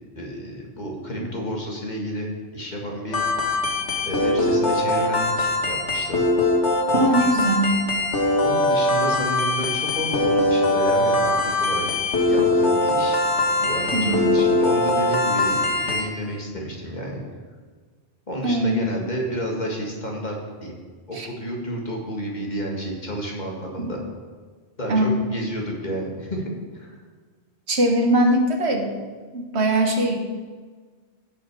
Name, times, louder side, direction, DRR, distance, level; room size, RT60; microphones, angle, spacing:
voice 1, 0.2-3.2 4.0-6.2 8.4-12.0 12.2-13.2 13.6-17.2 18.3-20.3 20.6-20.8 21.1-24.0 24.8-26.5 26.7-27.0, equal, 40° left, -1 dB, 2.0 m, -31 dB
sound 1, 3.1-16.0, left 2 dB, 80° left, 1.8 m, -21 dB
voice 2, 6.9-7.8 13.9-14.2 18.4-18.8 21.1-21.3 23.8-23.9 24.9-25.1 27.7-28.9 29.3-30.2, right 1 dB, 70° right, 3 dB, 1.5 m, -21 dB
16.5 x 5.6 x 4.8 m, 1.5 s
omnidirectional pair, 1.2 m